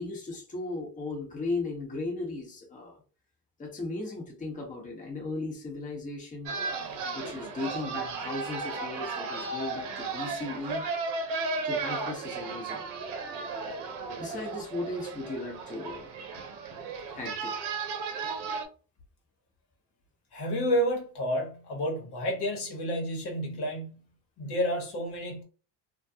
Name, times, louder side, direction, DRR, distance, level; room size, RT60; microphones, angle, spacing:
voice 1, 0.0-3.0 3.6-6.5 7.1-10.8 11.6-12.8 14.2-16.0 17.1-17.5, left 2 dB, 15° left, 1.0 m, -36 dB
sound 1, 6.5-18.7, right 4 dB, 80° right, 0.8 m, -35 dB
voice 2, 20.3-24.0 24.4-25.4, equal, 55° left, 1.2 m, -30 dB
2.4 x 2.2 x 2.7 m
supercardioid pair, 85°, 47 cm